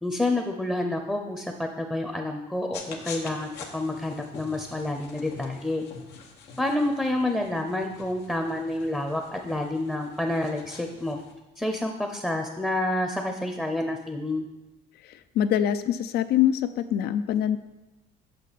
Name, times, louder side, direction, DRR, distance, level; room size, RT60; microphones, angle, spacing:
voice 1, 0.0-5.8 6.6-11.2 11.6-14.4, left 1 dB, 5° left, 3 dB, 0.6 m, -28 dB
sound 1, 2.7-11.3, left 5 dB, 90° left, 0.9 m, -45 dB
voice 2, 15.4-17.6, left 10 dB, 70° left, 12 dB, 0.5 m, -24 dB
6.8 x 5.4 x 4.1 m, 1.0 s
cardioid pair, 110°, 17 cm